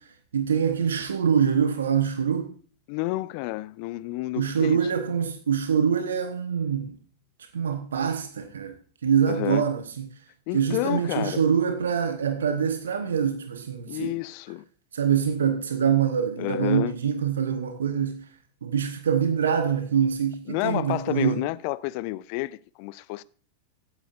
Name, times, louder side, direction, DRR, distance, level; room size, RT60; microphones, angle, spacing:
voice 1, 0.3-2.5 4.4-7.0 7.5-8.7 9.0-10.1 10.5-14.1 14.9-18.3 18.6-21.5, right 7 dB, 65° right, 1.0 m, -24 dB
voice 2, 2.9-4.9 9.3-9.7 10.5-11.5 13.9-14.6 16.4-16.9 20.5-23.2, left 19 dB, 45° left, 0.5 m, -30 dB
16.0 x 8.9 x 2.5 m
figure-of-eight pair, 90°, 0 cm